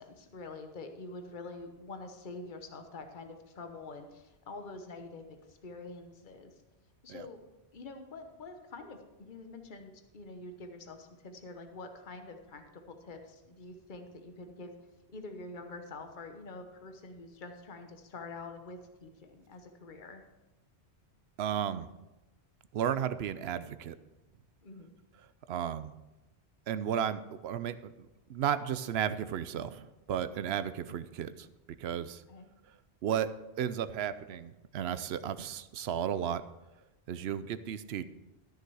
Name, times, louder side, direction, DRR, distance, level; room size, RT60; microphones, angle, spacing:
voice 1, 0.0-6.5 7.0-7.4 7.7-14.7 15.1-20.2 24.6-24.9 32.3-32.5, left 3 dB, 50° left, 6 dB, 1.2 m, -46 dB
voice 2, 21.4-21.9 22.7-24.0 25.5-25.9 26.7-31.5 31.8-32.2 33.0-33.3 33.6-36.4 37.1-38.0, right 9 dB, 70° right, 13 dB, 0.8 m, -34 dB
13.5 x 6.6 x 4.7 m, 0.99 s
omnidirectional pair, 1.1 m